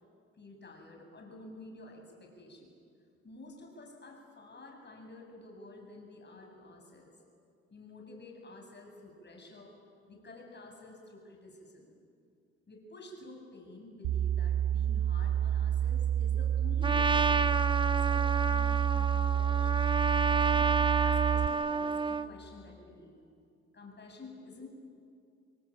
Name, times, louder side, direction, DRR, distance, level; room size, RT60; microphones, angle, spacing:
voice 1, 0.4-2.7 3.2-7.2 7.7-9.8 10.1-11.9 12.7-20.7 21.0-23.2 23.7-24.7, left 2 dB, 35° left, 1 dB, 7.6 m, -50 dB
sound 1, 14.0-21.5, right 10 dB, 80° right, 0.9 m, -29 dB
Trumpet, 16.8-22.3, right 4 dB, 15° right, 0.8 m, -30 dB
28.5 x 22.0 x 9.0 m, 2.4 s
cardioid pair, 90°, 30 cm